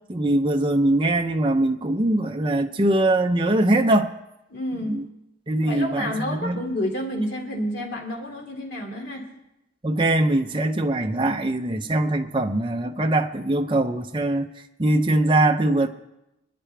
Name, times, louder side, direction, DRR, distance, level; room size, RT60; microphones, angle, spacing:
voice 1, 0.1-4.1 4.9-5.0 5.5-6.6 9.8-14.5 14.8-15.9, right 1 dB, 25° right, 4 dB, 0.6 m, -22 dB
voice 2, 4.5-5.0 5.6-9.3, equal, 55° left, 1 dB, 2.5 m, -29 dB
26.5 x 9.9 x 3.4 m, 0.91 s
head